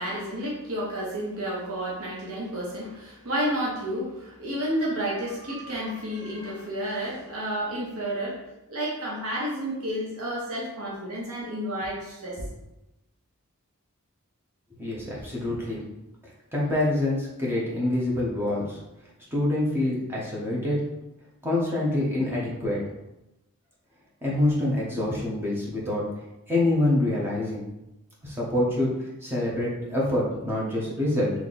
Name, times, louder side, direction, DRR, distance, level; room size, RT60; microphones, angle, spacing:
voice 1, 0.0-12.5, equal, 70° right, -4 dB, 1.0 m, -31 dB
voice 2, 14.8-15.8 16.5-18.8 19.3-20.8 21.4-22.8 24.2-26.0 26.5-27.7 28.2-31.3, left 1 dB, 10° right, -6 dB, 1.0 m, -26 dB
3.4 x 2.9 x 4.1 m, 0.93 s
head